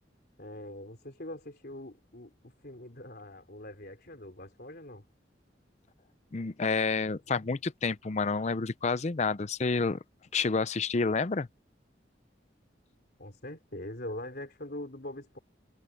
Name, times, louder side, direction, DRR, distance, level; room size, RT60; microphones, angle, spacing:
voice 1, 0.4-2.3 2.6-5.0 13.2-15.4, left 1 dB, 55° left, 4.0 m, -42 dB
voice 2, 6.3-10.0 10.3-11.5, left 4 dB, 40° left, 0.5 m, -29 dB
head